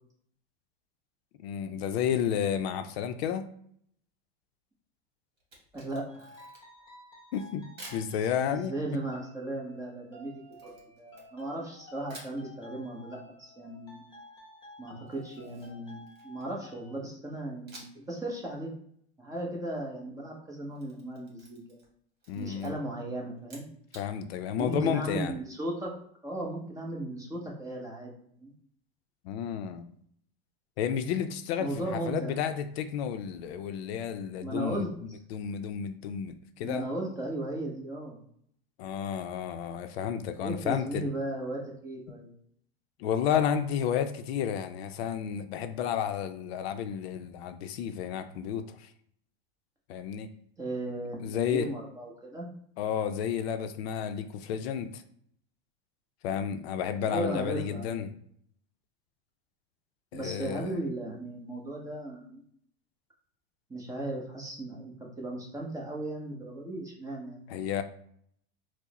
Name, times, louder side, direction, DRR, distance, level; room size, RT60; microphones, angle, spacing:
voice 1, 1.4-3.4 7.3-7.6 7.9-8.7 22.3-22.8 23.9-25.3 29.2-29.9 30.8-36.8 38.8-41.1 43.0-48.9 49.9-50.3 51.2-51.7 52.8-55.0 56.2-58.1 60.1-60.7 67.5-67.8, left 8 dB, 75° left, 9 dB, 0.5 m, -31 dB
Camera, 5.4-6.8 7.8-8.1 10.5-11.7 12.1-12.4 15.1-16.6 17.7-18.1 18.4-18.5 20.5-21.9 22.2-22.7 23.4-24.1, right 2 dB, 30° right, 1.4 m, -51 dB
voice 2, 5.7-6.4 8.5-10.3 10.6-14.0 14.8-18.7 19.2-21.8 22.3-23.7 24.6-25.9 26.2-28.5 31.6-32.4 34.4-34.9 36.5-38.2 40.4-42.3 50.6-52.5 57.1-58.0 60.1-62.4 63.7-67.5, right 1 dB, 10° right, -1 dB, 0.7 m, -36 dB
sound 1, 6.1-17.0, left 1 dB, 15° left, 1.0 m, -53 dB
4.6 x 2.0 x 2.9 m, 0.66 s
supercardioid pair, 140°, 31 cm